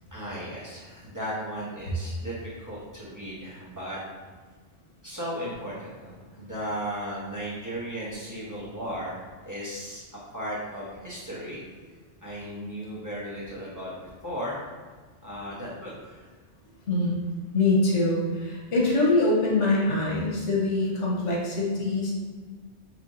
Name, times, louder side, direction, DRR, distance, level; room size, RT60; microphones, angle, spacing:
voice 1, 0.1-4.0 5.0-10.0 10.3-11.6 12.2-14.6 15.2-16.2, equal, 20° right, -8 dB, 0.8 m, -36 dB
voice 2, 16.9-17.2 17.5-22.1, left 2 dB, 85° left, -3 dB, 1.3 m, -24 dB
4.9 x 3.0 x 2.6 m, 1.4 s
omnidirectional pair, 1.2 m